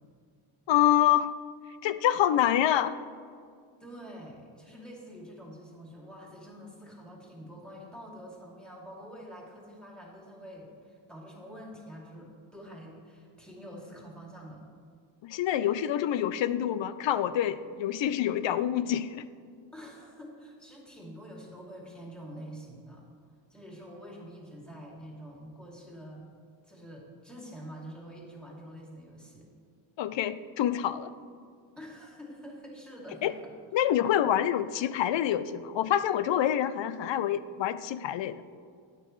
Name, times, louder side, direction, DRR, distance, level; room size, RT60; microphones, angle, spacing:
voice 1, 0.7-1.3 1.8-2.9 15.2-19.3 30.0-31.1 33.2-33.3 33.7-38.4, left 11 dB, 65° left, 14 dB, 0.6 m, -26 dB
voice 2, 3.8-14.6 19.7-23.0 23.5-26.3 26.6-29.5 31.8-33.5, equal, ahead, -3 dB, 2.6 m, -46 dB
12.0 x 9.1 x 3.2 m, 2.2 s
cardioid pair, 85°, 48 cm